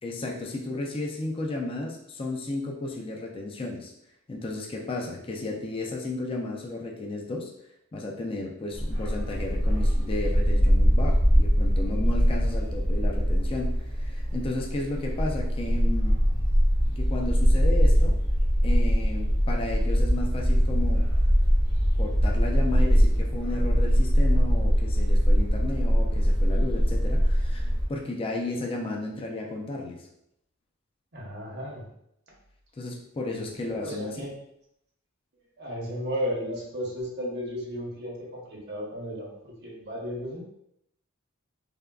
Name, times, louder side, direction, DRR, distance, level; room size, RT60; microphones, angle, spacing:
voice 1, 0.0-3.9 4.3-7.5 7.9-16.2 16.9-18.2 18.6-21.1 22.0-30.1 32.8-34.3, left 2 dB, 25° left, 0 dB, 0.3 m, -33 dB
Bark, 8.7-27.9, equal, 50° left, 1.0 m, -22 dB
voice 2, 31.1-31.8 33.3-34.3 35.6-40.4, equal, 50° right, -3 dB, 0.8 m, -34 dB
3.4 x 2.1 x 2.3 m, 0.76 s
head